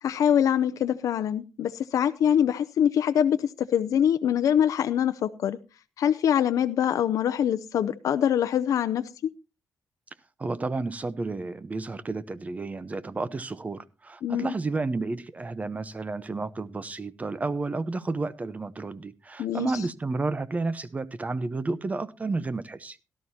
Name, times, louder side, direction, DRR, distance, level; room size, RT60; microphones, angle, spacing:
voice 1, 0.0-5.6 6.0-9.0 14.2-14.5 19.4-19.7, left 9 dB, 85° left, 10 dB, 0.5 m, -24 dB
voice 2, 10.4-23.0, right 3 dB, 25° right, 16 dB, 0.8 m, -31 dB
17.5 x 12.5 x 2.8 m, 0.30 s
cardioid pair, 115°, 6 cm